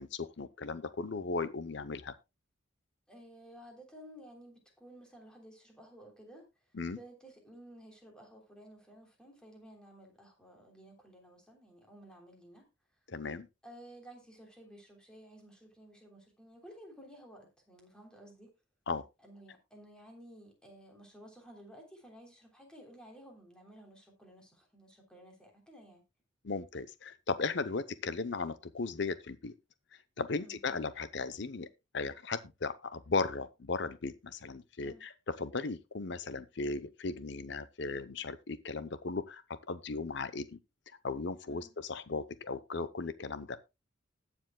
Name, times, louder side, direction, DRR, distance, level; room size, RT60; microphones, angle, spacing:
voice 1, 0.0-2.1 6.7-7.0 13.1-13.5 18.9-19.0 26.4-29.5 30.2-31.7 31.9-39.4 39.7-40.6 41.0-43.6, left 4 dB, 60° left, 0.7 m, -36 dB
voice 2, 3.1-6.4 6.9-12.6 13.6-18.5 19.2-26.0 30.4-30.6 34.8-35.0 41.4-41.7, right 1 dB, 5° left, 3.3 m, -54 dB
20.0 x 7.1 x 2.2 m
head